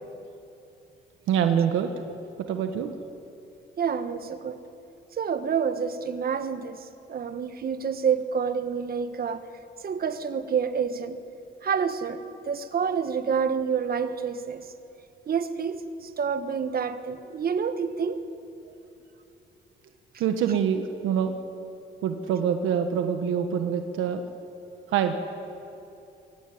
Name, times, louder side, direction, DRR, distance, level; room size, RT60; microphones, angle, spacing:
voice 1, 1.3-2.9 20.2-21.4 22.0-24.2 24.9-25.1, right 8 dB, 90° right, 1.3 m, -25 dB
voice 2, 3.8-4.6 5.2-9.5 9.8-11.2 11.6-14.6 15.3-18.2, right 6 dB, 50° right, 1.5 m, -28 dB
23.0 x 15.5 x 9.4 m
cardioid pair, 90°, 20 cm